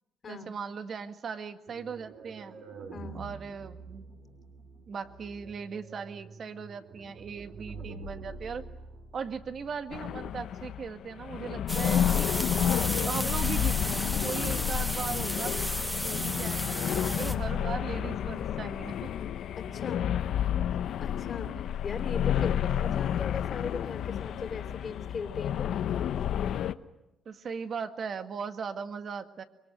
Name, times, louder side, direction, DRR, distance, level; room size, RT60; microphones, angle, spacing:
voice 1, 0.3-2.6 3.1-4.1 4.9-8.7 9.1-12.3 13.0-15.6 16.2-19.1 27.2-29.4, right 6 dB, 50° right, 8 dB, 1.8 m, -38 dB
sound 1, 1.7-10.4, right 3 dB, 70° right, 4.9 m, -47 dB
voice 2, 2.9-3.3 16.0-16.4 19.6-20.1 21.0-25.8, left 5 dB, 40° left, 8 dB, 3.1 m, -39 dB
sound 2, 9.9-26.7, left 10 dB, 70° left, 0.9 m, -30 dB
sound 3, 11.7-17.3, equal, 5° right, 2.1 m, -34 dB
25.0 x 23.0 x 9.3 m, 0.95 s
cardioid pair, 105°, 0 cm